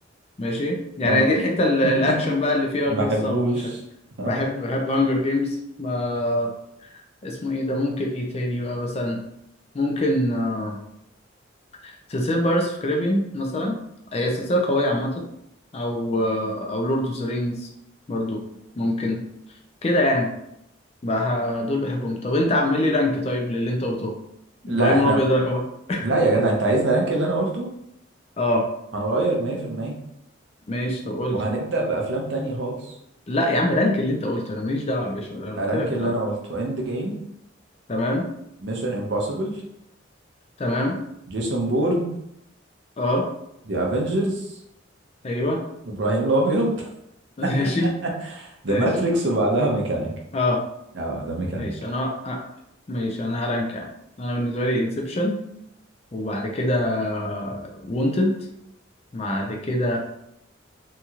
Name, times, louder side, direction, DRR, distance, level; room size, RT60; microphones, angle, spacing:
voice 1, 0.4-3.5 4.2-6.5 7.2-9.2 9.7-10.8 11.8-13.8 14.1-15.2 15.7-17.7 18.1-18.4 18.8-19.2 19.8-20.3 21.0-24.1 24.6-25.6 25.9-26.2 28.4-28.6 30.7-31.4 33.3-36.1 37.9-38.2 40.6-41.0 43.0-43.3 45.2-45.6 47.4-47.9 48.7-48.9 50.3-50.6 51.6-52.4 52.9-53.9 54.2-55.4 56.1-58.3 59.1-60.0, left 1 dB, 30° left, 1 dB, 0.4 m, -24 dB
voice 2, 1.0-1.3 2.1-2.2 2.9-3.8 4.2-4.3 24.7-25.2 26.0-27.7 28.9-30.0 31.3-33.0 35.6-37.2 38.6-39.6 41.3-42.1 43.7-44.4 45.9-46.9 47.4-50.1 50.9-51.7, right 2 dB, 60° right, 0 dB, 0.6 m, -24 dB
2.9 x 2.8 x 2.4 m, 0.79 s
head